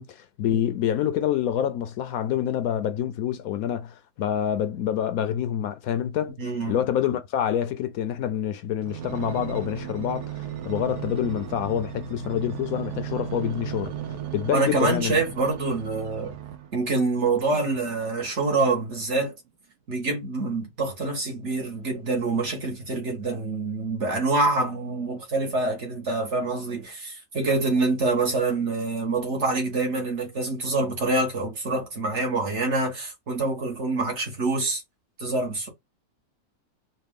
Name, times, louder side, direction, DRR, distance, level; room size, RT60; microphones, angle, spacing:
voice 1, 0.0-6.4 6.7-10.3 10.6-13.9 14.3-15.2, left 10 dB, 75° left, 1.0 m, -27 dB
voice 2, 6.4-6.8 14.5-16.3 16.7-19.3 19.9-34.8 35.2-35.7, right 3 dB, 50° right, 1.5 m, -26 dB
sound 1, 8.8-16.8 17.4-18.7 19.3-19.4, right 10 dB, 80° right, 1.2 m, -36 dB
4.1 x 2.3 x 3.5 m
omnidirectional pair, 1.6 m